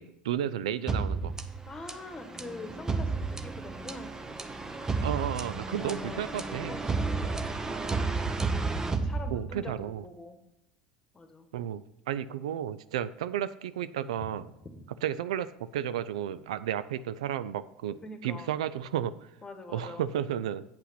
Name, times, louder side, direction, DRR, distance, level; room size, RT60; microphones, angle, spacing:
voice 1, 0.0-1.3 5.0-6.7 9.3-10.0 11.5-14.5 15.0-19.1 19.7-20.6, right 10 dB, 80° right, 15 dB, 0.4 m, -33 dB
sound 1, 0.9-9.8, right 4 dB, 15° right, 0.7 m, -32 dB
voice 2, 1.7-4.2 5.7-6.3 6.7-7.8 9.0-10.4 11.1-11.5 14.6-14.7 18.0-18.6 19.4-20.1, left 2 dB, 20° left, 7 dB, 1.5 m, -44 dB
8.7 x 5.7 x 5.7 m, 0.82 s
hypercardioid pair, 85°, 3 cm